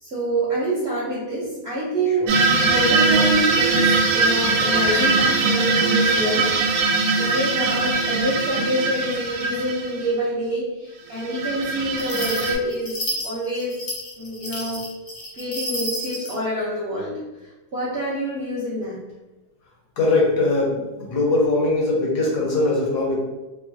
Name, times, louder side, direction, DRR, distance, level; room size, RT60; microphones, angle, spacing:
voice 1, 0.0-6.5 6.9-13.8 14.2-14.9 15.4-17.2 17.7-19.0, right 1 dB, 65° right, -7 dB, 0.7 m, -26 dB
sound 1, 2.3-10.1 11.2-12.5, right 3 dB, 85° right, 1.2 m, -21 dB
sound 2, 12.0-16.4, equal, 55° left, 1.0 m, -31 dB
voice 2, 20.0-23.2, left 2 dB, 75° left, -2 dB, 1.3 m, -21 dB
3.0 x 2.2 x 2.5 m, 1.1 s
omnidirectional pair, 1.8 m